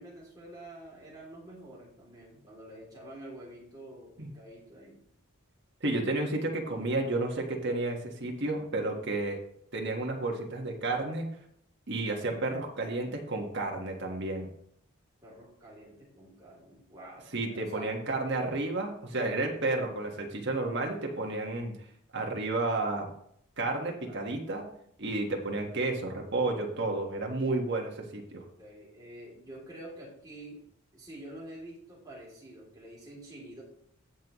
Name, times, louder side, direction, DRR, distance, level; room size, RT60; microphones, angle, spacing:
voice 1, 0.0-5.0 15.2-17.9 24.0-24.2 28.6-30.7 30.9-33.6, right 1 dB, 15° right, -4 dB, 3.1 m, -48 dB
voice 2, 5.8-9.4 9.7-11.3 11.9-14.5 17.3-21.7 22.1-23.1 23.6-24.6 25.0-28.4, right 2 dB, 50° right, 1 dB, 1.6 m, -31 dB
16.0 x 5.5 x 3.1 m, 0.69 s
head